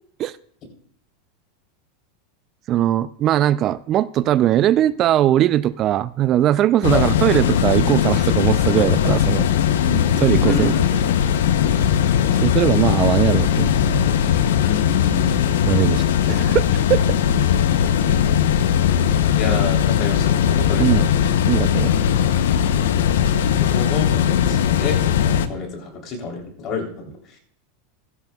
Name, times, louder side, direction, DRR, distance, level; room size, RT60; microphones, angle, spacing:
voice 1, 2.7-9.5 10.2-10.7 12.4-14.0 15.7-16.6 20.8-21.1 21.5-21.9, right 12 dB, 45° right, 16 dB, 0.4 m, -19 dB
sound 1, 6.8-25.5, left 9 dB, 75° left, 0.7 m, -19 dB
voice 2, 9.8-10.8 11.6-11.8 14.6-15.4 19.3-21.1 23.2-27.1, left 3 dB, 45° left, 1 dB, 3.3 m, -29 dB
16.0 x 13.0 x 2.3 m, 0.62 s
hypercardioid pair, 100°, 0 cm